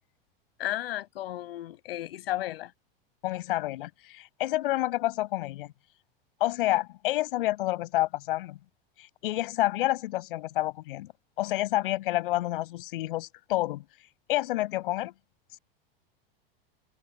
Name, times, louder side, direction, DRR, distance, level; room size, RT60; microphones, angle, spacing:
voice 1, 0.6-2.7, left 14 dB, 80° left, 7.1 m, -33 dB
voice 2, 3.2-5.7 6.4-8.6 9.0-11.1 11.4-13.8 14.3-15.1, left 17 dB, 65° left, 7.5 m, -29 dB
open air
supercardioid pair, 180°, 29 cm